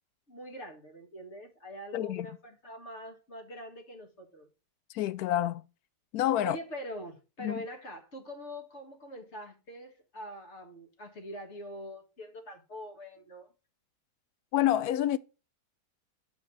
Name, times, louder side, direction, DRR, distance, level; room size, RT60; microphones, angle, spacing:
voice 1, 0.3-4.5 6.4-13.5, equal, 40° left, 1.8 m, -44 dB
voice 2, 1.9-2.3 4.9-5.6 6.1-6.6 7.4-7.6 14.5-15.2, left 12 dB, 70° left, 1.0 m, -28 dB
10.5 x 5.0 x 4.7 m
omnidirectional pair, 1.8 m